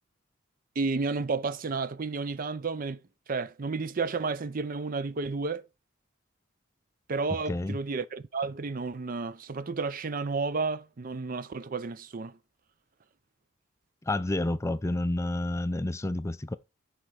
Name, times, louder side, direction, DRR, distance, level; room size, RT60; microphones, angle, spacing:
voice 1, 0.8-3.0 3.3-5.6 7.1-12.4, right 4 dB, 45° right, 0.5 m, -31 dB
voice 2, 14.1-16.5, left 1 dB, 15° left, 0.4 m, -29 dB
11.0 x 4.5 x 4.8 m
head